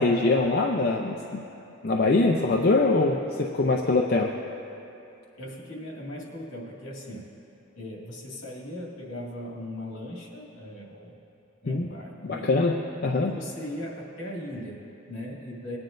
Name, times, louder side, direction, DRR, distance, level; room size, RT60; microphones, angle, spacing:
voice 1, 0.0-1.4 1.8-4.3 11.7-11.9 12.3-12.7 13.0-13.3, left 3 dB, 50° left, 0 dB, 0.5 m, -23 dB
voice 2, 5.4-7.3 7.8-11.2 11.6-12.5 13.2-15.8, left 1 dB, 70° left, -3 dB, 2.0 m, -38 dB
19.0 x 9.6 x 2.6 m, 2.8 s
head